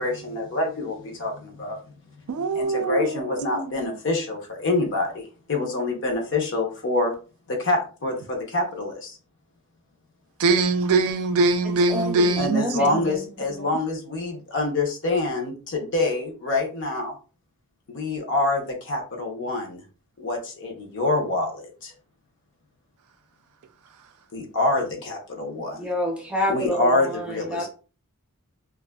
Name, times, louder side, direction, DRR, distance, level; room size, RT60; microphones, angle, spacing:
voice 1, 0.0-1.8 2.5-7.1 7.5-9.2 12.4-17.1 17.9-19.8 20.2-21.9 24.3-25.9 26.5-27.7, left 2 dB, 55° left, 0.7 m, -26 dB
voice 2, 2.3-3.9 10.4-12.7, right 3 dB, 70° right, 0.4 m, -22 dB
voice 3, 11.6-13.8 25.8-27.7, left 1 dB, 5° right, 0.6 m, -29 dB
2.5 x 2.3 x 2.2 m
head